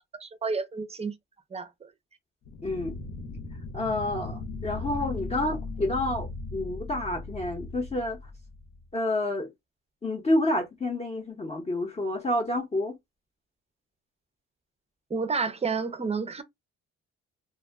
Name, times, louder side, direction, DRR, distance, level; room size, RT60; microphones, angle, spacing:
voice 1, 0.2-1.2 1.5-1.9 15.1-16.4, right 4 dB, 20° right, 0.5 m, -30 dB
sound 1, 2.5-8.9, left 3 dB, 60° left, 0.8 m, -38 dB
voice 2, 2.6-3.0 3.7-8.2 8.9-9.5 10.0-12.9, left 1 dB, 20° left, 0.7 m, -29 dB
2.2 x 2.1 x 3.4 m
cardioid pair, 90°, 30 cm